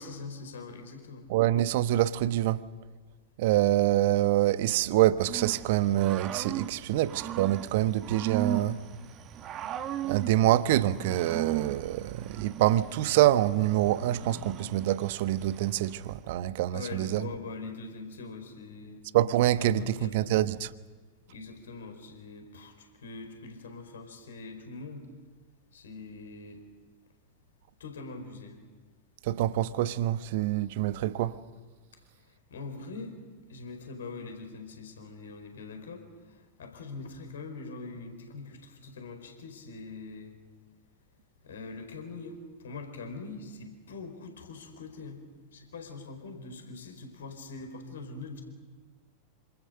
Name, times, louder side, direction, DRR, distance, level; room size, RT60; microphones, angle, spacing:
voice 1, 0.0-1.3 16.7-19.0 19.6-20.5 21.3-25.1 25.7-26.6 27.8-28.6 32.2-33.2 33.5-40.4 41.4-45.2 45.5-48.4, left 3 dB, 65° left, 4.7 m, -43 dB
voice 2, 1.3-2.6 3.4-8.8 10.0-17.3 19.1-20.7 29.2-31.4, right 14 dB, 50° right, 1.1 m, -26 dB
Growling / Cricket, 5.2-16.2, right 10 dB, 30° right, 1.3 m, -38 dB
27.5 x 26.0 x 6.8 m
figure-of-eight pair, 90°, 0 cm